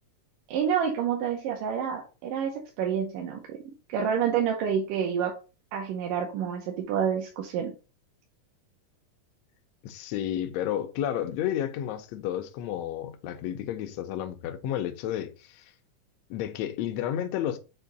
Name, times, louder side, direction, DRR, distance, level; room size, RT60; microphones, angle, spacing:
voice 1, 0.5-3.6 3.9-5.3 5.7-7.7, right 8 dB, 80° right, 2.4 m, -28 dB
voice 2, 9.8-15.7 16.3-17.6, left 11 dB, 80° left, 1.5 m, -31 dB
6.8 x 2.7 x 5.2 m
omnidirectional pair, 3.7 m